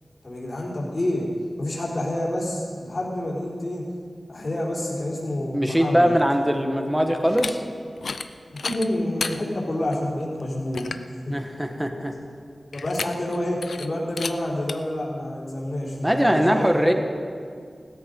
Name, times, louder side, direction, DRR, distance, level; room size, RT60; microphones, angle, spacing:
voice 1, 0.2-1.3 1.6-3.9 4.3-6.2 8.6-11.3 12.7-16.8, left 1 dB, 50° left, -5 dB, 3.9 m, -28 dB
voice 2, 5.5-7.6 11.3-12.1 16.0-16.9, equal, 10° right, 5 dB, 1.4 m, -21 dB
sound 1, 7.2-7.5 8.0-8.3 8.6-9.4 9.9-10.0 10.4-10.5 10.7-11.1 12.7-13.4 13.6-13.9 14.2-14.3 14.7-14.8, left 4 dB, 90° left, 0.5 m, -31 dB
15.5 x 13.0 x 5.3 m, 2.1 s
wide cardioid pair, 60°, 0 cm